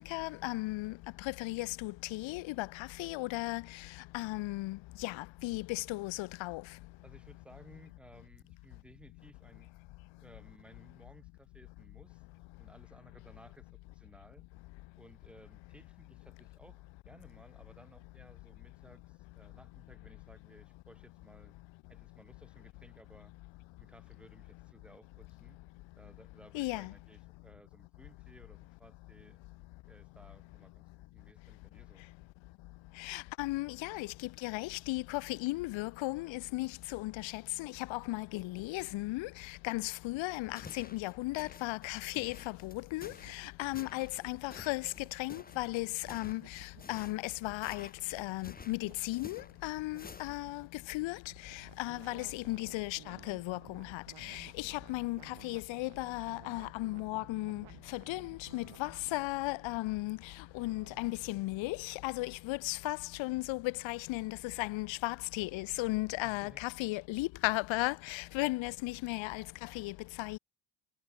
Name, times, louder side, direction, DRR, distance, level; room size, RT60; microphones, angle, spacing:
voice 1, 0.0-6.6 26.5-26.9 33.0-70.4, left 21 dB, 80° left, 0.5 m, -36 dB
voice 2, 7.0-9.7 10.2-12.2 12.6-14.5 15.0-21.5 21.9-23.3 23.8-25.6 26.0-29.4 29.9-32.0 43.6-43.9 51.8-52.0 66.2-66.6 68.4-68.5, right 1 dB, ahead, 1.1 m, -59 dB
sound 1, 40.3-50.6, left 5 dB, 20° left, 0.7 m, -52 dB
sound 2, 43.0-59.2, right 13 dB, 75° right, 2.1 m, -57 dB
sound 3, 56.8-62.0, right 8 dB, 45° right, 1.7 m, -61 dB
cardioid pair, 90°, 45 cm